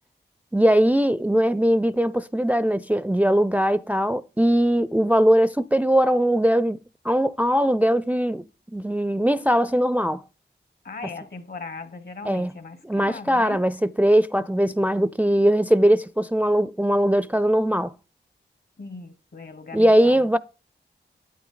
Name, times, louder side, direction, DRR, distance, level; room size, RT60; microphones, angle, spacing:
voice 1, 0.5-6.8 7.0-8.4 8.7-10.2 11.0-11.1 12.2-12.5 12.8-17.9 19.7-20.4, equal, 10° right, 0.4 m, -20 dB
voice 2, 10.8-13.6 18.8-20.4, left 4 dB, 55° left, 1.4 m, -38 dB
9.3 x 8.9 x 3.9 m
cardioid pair, 45°, 19 cm